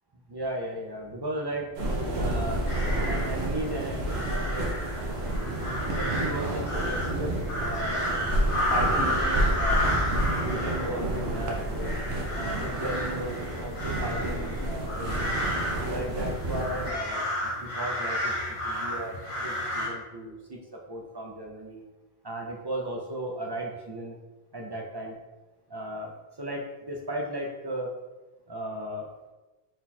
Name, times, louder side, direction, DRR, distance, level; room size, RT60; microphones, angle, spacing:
voice 1, 0.3-1.7 2.2-2.7 3.1-4.7 5.8-8.2 8.7-10.0 10.4-11.9 12.3-15.3 15.8-17.3 17.6-21.8 22.2-24.2 24.5-25.2 25.7-27.9 28.5-29.1, right 1 dB, 45° right, 0 dB, 0.3 m, -36 dB
sound 1, 1.7-16.9, right 1 dB, 85° right, 0.9 m, -30 dB
sound 2, 2.4-19.9, left 1 dB, 45° left, 1.0 m, -32 dB
4.2 x 2.3 x 4.1 m, 1.1 s
omnidirectional pair, 1.0 m